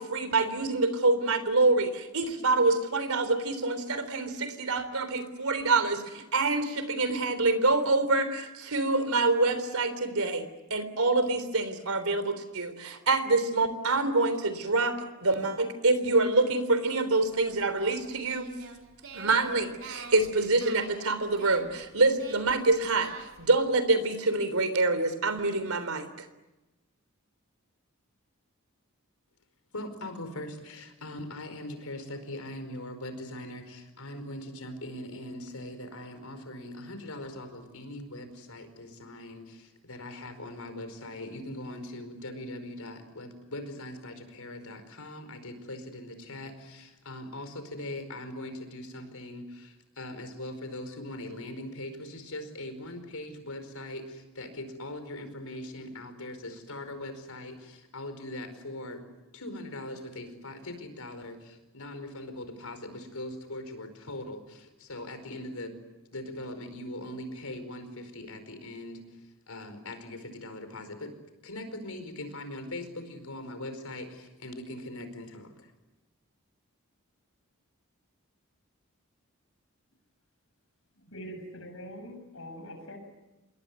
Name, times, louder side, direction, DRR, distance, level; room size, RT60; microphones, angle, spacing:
voice 1, 0.0-10.4 10.7-14.9 15.2-18.5 19.1-23.1 23.4-26.3, right 3 dB, 85° right, 12 dB, 3.5 m, -26 dB
Singing, 17.2-23.5, right 3 dB, 65° right, 4.7 m, -47 dB
voice 2, 29.7-59.0 59.3-65.7 66.1-69.0 69.5-71.1 71.4-75.7, left 1 dB, 90° left, 9 dB, 4.9 m, -41 dB
voice 3, 81.1-83.0, equal, 65° left, 6 dB, 7.5 m, -43 dB
28.0 x 22.0 x 9.6 m, 1.0 s
head